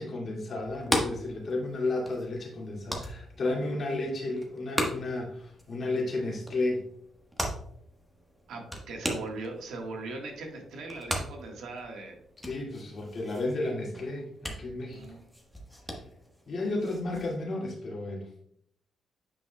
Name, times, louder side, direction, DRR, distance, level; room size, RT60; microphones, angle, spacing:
voice 1, 0.0-6.9 12.4-15.2 16.5-18.3, left 2 dB, 50° left, -2 dB, 2.2 m, -32 dB
sound 1, 0.6-17.4, equal, ahead, 1.2 m, -38 dB
voice 2, 8.5-12.2 14.9-15.2, right 3 dB, 90° right, 1 dB, 1.5 m, -39 dB
9.2 x 5.1 x 2.3 m, 0.67 s
cardioid pair, 120°, 0 cm